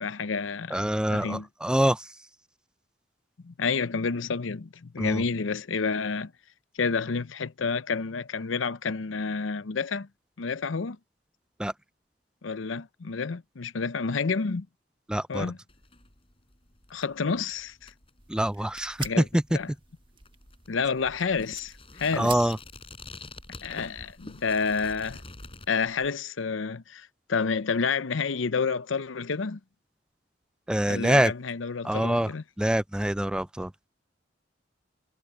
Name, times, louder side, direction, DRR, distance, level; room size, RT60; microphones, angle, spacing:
voice 1, 0.0-0.8 1.1-1.5 3.4-6.3 6.8-10.1 10.4-11.0 12.4-14.7 15.3-15.6 16.9-17.9 19.0-19.2 19.5-19.7 20.7-22.4 23.6-25.2 25.7-29.6 30.9-32.4, left 5 dB, 85° left, 0.7 m, -29 dB
voice 2, 0.7-2.1 5.0-5.2 11.6-11.7 15.1-15.5 18.3-19.6 22.1-22.6 30.7-31.3 31.8-32.3 32.6-33.7, right 1 dB, 5° right, 0.4 m, -25 dB
sound 1, 15.7-25.7, left 3 dB, 30° left, 5.4 m, -48 dB
sound 2, 18.2-26.1, right 6 dB, 25° right, 1.3 m, -48 dB
head